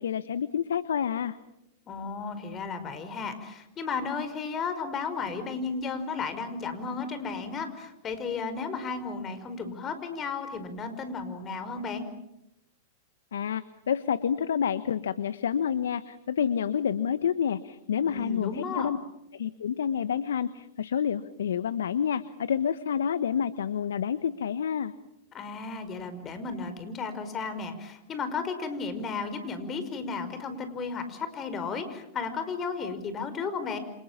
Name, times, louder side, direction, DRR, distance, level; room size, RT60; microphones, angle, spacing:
voice 1, 0.0-1.4 13.3-19.0 19.3-24.9, left 8 dB, 75° left, 15 dB, 1.0 m, -28 dB
voice 2, 1.9-12.1 18.1-18.9 25.3-33.8, left 4 dB, 30° left, 10 dB, 5.2 m, -34 dB
29.5 x 27.0 x 7.3 m, 0.86 s
hypercardioid pair, 100°, 0 cm